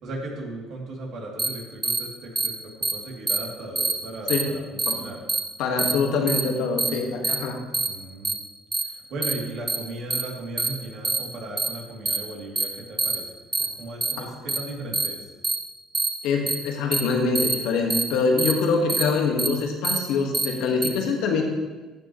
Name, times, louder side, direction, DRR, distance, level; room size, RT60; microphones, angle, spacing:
voice 1, 0.0-5.2 7.8-8.4 8.8-13.2 13.8-15.2, right 2 dB, 65° right, -2 dB, 2.6 m, -36 dB
sound 1, 1.4-1.5 1.8-2.0 2.4-2.5 2.8-2.9 3.3-3.4 3.8-3.9 4.3-4.4 4.8-4.9 5.3-5.4 5.8-5.9 6.3-6.4 6.8-6.9 7.2-7.4 7.7-7.9 8.2-8.3 8.7-8.8 9.2-9.3 9.7-9.8 10.1-10.2 10.6-10.7 11.0-11.2 11.6-11.7 12.1-12.2 12.6-12.7 13.0-13.2 13.5-13.7 14.0-14.1 14.5-14.6 14.9-15.1 15.4-15.6 15.9-16.1 16.5-16.6 16.9-17.0 17.4-17.5 17.9-18.0 18.4-18.5 18.9-19.0 19.4-19.5 19.8-20.0 20.3-20.5 20.8-20.9, right 3 dB, 20° right, 1.1 m, -24 dB
voice 2, 5.6-7.6 14.2-14.3 16.2-21.4, left 4 dB, 75° left, 2 dB, 1.4 m, -24 dB
14.5 x 6.2 x 3.0 m, 1.2 s
supercardioid pair, 80°, 0 cm